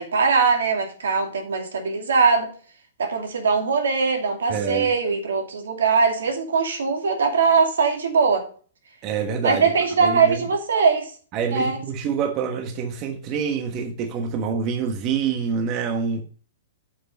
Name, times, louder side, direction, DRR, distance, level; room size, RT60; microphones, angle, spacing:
voice 1, 0.0-2.5 3.0-8.5 9.4-11.1 11.5-11.8, right 5 dB, 85° right, 2.5 m, -21 dB
voice 2, 4.5-4.9 9.0-9.6 10.0-10.5 11.3-16.2, right 6 dB, 35° right, 1.3 m, -26 dB
8.6 x 5.4 x 5.2 m
hypercardioid pair, 135°, 0 cm